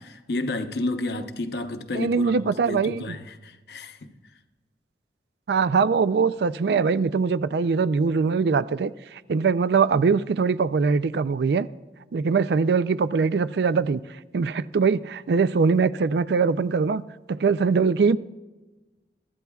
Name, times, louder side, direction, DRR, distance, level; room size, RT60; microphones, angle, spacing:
voice 1, 0.0-2.3 2.7-4.1, left 2 dB, 65° left, 0.8 m, -31 dB
voice 2, 1.9-3.2 5.5-11.7 12.1-14.0 14.3-17.0 17.3-18.2, right 5 dB, 65° right, 0.4 m, -22 dB
23.0 x 13.0 x 2.3 m
head